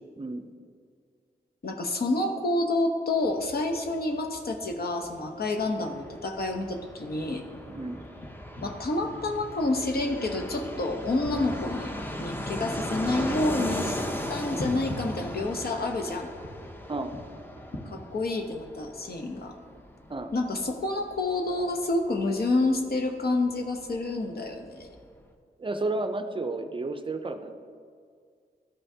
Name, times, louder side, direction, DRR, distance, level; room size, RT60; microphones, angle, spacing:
voice 1, 0.2-0.5 7.7-8.0 16.9-17.1 20.1-20.3 25.6-27.5, right 2 dB, 30° right, 8 dB, 0.4 m, -32 dB
voice 2, 1.6-7.4 8.6-11.9 12.2-14.0 14.3-16.3 17.9-19.5 20.3-24.9, left 2 dB, 65° left, 4 dB, 0.8 m, -28 dB
sound 1, 3.1-17.8, left 1 dB, 50° left, 1.3 m, -45 dB
Fixed-wing aircraft airplane, 5.6-24.0 24.2-24.3 24.5-25.2, left 1 dB, 10° left, 0.6 m, -37 dB
12.5 x 5.6 x 2.7 m, 2.1 s
wide cardioid pair, 95°, 17 cm